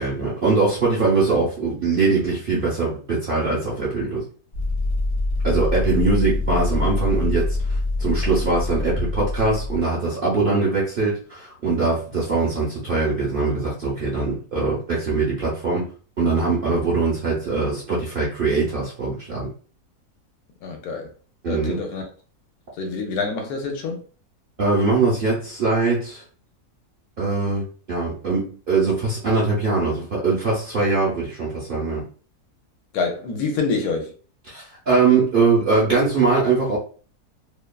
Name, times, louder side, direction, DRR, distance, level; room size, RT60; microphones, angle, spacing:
voice 1, 0.0-4.2 5.4-15.9 16.2-19.5 21.4-21.8 24.6-26.2 27.2-32.0 34.5-36.8, right 3 dB, 50° right, 0.6 m, -22 dB
sound 1, 4.5-9.8, left 2 dB, 40° left, 1.0 m, -24 dB
voice 2, 20.6-21.1 21.5-22.0 22.8-24.0 32.9-34.1, left 4 dB, 75° left, 1.1 m, -26 dB
2.8 x 2.3 x 2.2 m
omnidirectional pair, 1.7 m